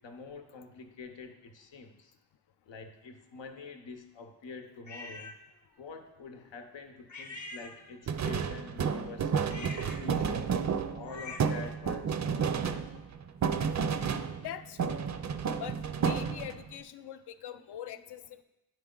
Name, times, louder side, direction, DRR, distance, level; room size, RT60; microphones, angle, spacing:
voice 1, 0.0-2.1 2.6-5.4 5.8-10.4 10.9-12.9 17.5-17.6 17.9-18.0, left 4 dB, 90° left, 5 dB, 0.9 m, -47 dB
sound 1, 4.9-5.4 7.1-8.2 9.4-11.7, left 2 dB, 45° left, 0.9 m, -45 dB
sound 2, 8.1-14.5 14.8-16.7, right 6 dB, 45° right, 0.4 m, -31 dB
voice 2, 14.4-15.8 16.0-18.4, left 10 dB, 65° left, 10 dB, 0.5 m, -43 dB
9.2 x 4.7 x 3.8 m, 1.0 s
cardioid pair, 85°, 43 cm